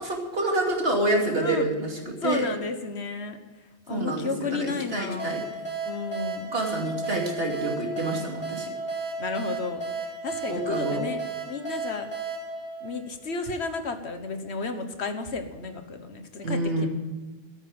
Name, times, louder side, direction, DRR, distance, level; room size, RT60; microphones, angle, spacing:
voice 1, 0.0-2.5 3.9-5.4 6.5-8.7 10.5-11.0 16.4-16.9, right 1 dB, 65° right, 0 dB, 2.9 m, -27 dB
voice 2, 1.4-1.7 2.2-3.4 3.9-5.4 5.8-6.5 9.2-9.8 10.2-11.2 11.5-12.1 12.8-16.9, left 4 dB, 80° left, 8 dB, 1.6 m, -32 dB
sound 1, 5.2-13.6, right 3 dB, 25° left, 3.8 m, -34 dB
13.5 x 9.9 x 7.7 m, 1.3 s
omnidirectional pair, 1.1 m